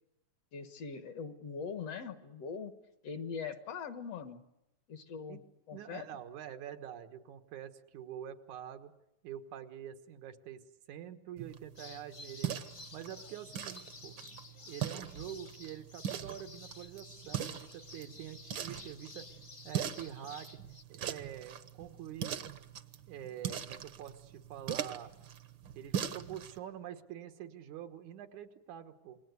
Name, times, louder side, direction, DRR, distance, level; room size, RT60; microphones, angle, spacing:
voice 1, 0.5-2.7 3.0-4.4 4.9-5.4 5.7-6.1, left 6 dB, 60° left, 9 dB, 2.2 m, -41 dB
voice 2, 5.7-8.9 9.2-10.6 10.9-12.6 12.9-14.2 14.7-19.3 19.6-20.6 20.9-22.4 23.1-25.1 25.7-29.2, right 10 dB, 85° right, 7 dB, 2.8 m, -46 dB
sound 1, 11.4-26.6, right 9 dB, 60° right, 1.3 m, -41 dB
sound 2, 11.8-20.8, left 3 dB, 35° left, 1.1 m, -52 dB
28.0 x 21.0 x 8.2 m, 0.90 s
omnidirectional pair, 3.3 m